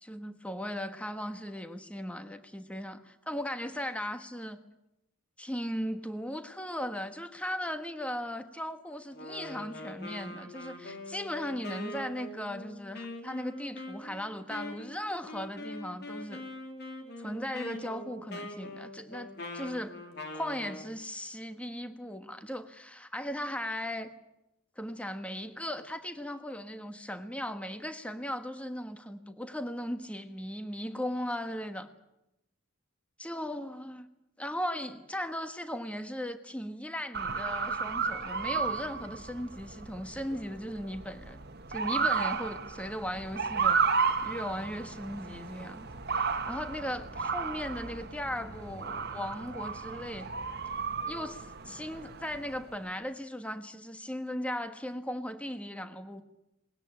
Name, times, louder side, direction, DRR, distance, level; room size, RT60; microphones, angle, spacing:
voice 1, 0.0-4.6 5.4-16.4 17.2-20.0 20.3-24.1 24.8-31.9 33.2-34.1 34.4-41.4 41.7-43.8 44.2-45.9 46.5-50.3 51.1-56.2, equal, 5° left, 9 dB, 1.3 m, -37 dB
Wind instrument woodwind instrument, 9.1-20.9, left 1 dB, 50° left, 3.2 m, -43 dB
Motor vehicle (road) / Siren, 37.1-52.7, right 5 dB, 50° right, 1.3 m, -33 dB
20.5 x 20.0 x 8.8 m, 0.88 s
head